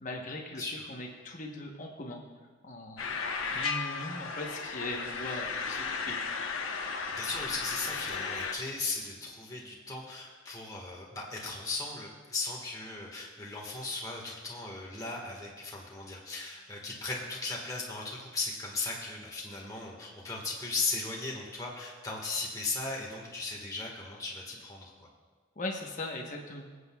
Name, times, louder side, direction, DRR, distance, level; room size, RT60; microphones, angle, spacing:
voice 1, 0.0-0.6 0.9-2.2 2.6-3.1 3.5-6.3 25.6-26.7, left 2 dB, 40° left, 0 dB, 1.0 m, -39 dB
voice 2, 0.6-0.9 7.1-25.1, left 3 dB, 20° left, -2 dB, 1.5 m, -37 dB
sound 1, 3.0-8.5, left 5 dB, 80° left, 1.0 m, -35 dB
23.0 x 8.0 x 2.3 m, 1.4 s
head